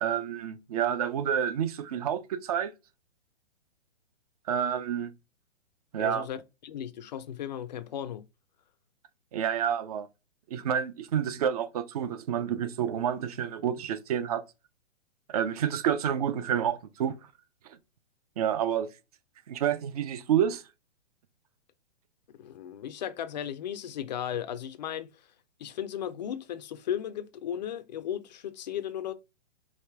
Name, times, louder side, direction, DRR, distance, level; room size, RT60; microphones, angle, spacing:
voice 1, 0.0-2.7 4.5-5.1 5.9-6.3 9.3-10.1 10.5-14.4 15.3-17.2 18.4-18.9 19.5-20.6, right 9 dB, 35° right, 0.4 m, -29 dB
voice 2, 6.0-8.2 22.4-25.1 25.6-29.1, left 10 dB, 40° left, 0.4 m, -35 dB
4.9 x 2.6 x 3.3 m
hypercardioid pair, 130°, 35 cm